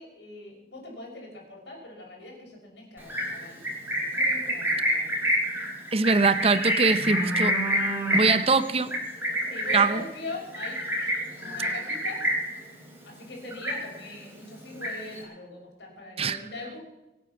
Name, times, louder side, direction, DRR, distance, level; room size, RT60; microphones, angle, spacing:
voice 1, 0.0-3.6 4.1-5.1 9.5-11.1 11.4-12.2 13.0-16.8, left 2 dB, 80° left, 5.6 m, -41 dB
Livestock farm animals working animals, 3.0-12.6 12.9-13.2 13.5-14.2 14.5-15.2, equal, 15° right, 3.8 m, -27 dB
voice 2, 5.9-7.6 8.1-8.9 9.7-10.0 16.2-16.4, right 4 dB, 35° right, 0.7 m, -22 dB
24.5 x 9.0 x 5.9 m
head